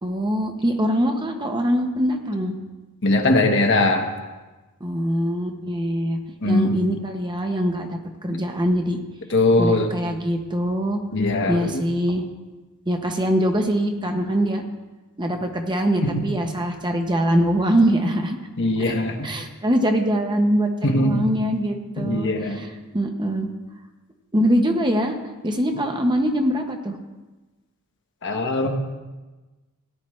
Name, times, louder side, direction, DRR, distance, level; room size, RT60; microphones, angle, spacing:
voice 1, 0.0-2.5 4.8-6.2 6.4-9.0 9.6-11.0 11.5-12.2 12.9-14.6 15.2-18.4 19.2-23.5 24.3-25.2 25.4-26.9, equal, 20° right, 4 dB, 0.9 m, -23 dB
voice 2, 3.0-4.1 6.4-6.8 9.3-9.9 11.1-11.8 16.0-16.2 18.6-19.3 20.8-21.2 22.0-22.7 28.2-28.7, left 2 dB, 55° left, 3 dB, 1.3 m, -20 dB
17.5 x 10.5 x 3.2 m, 1.2 s
head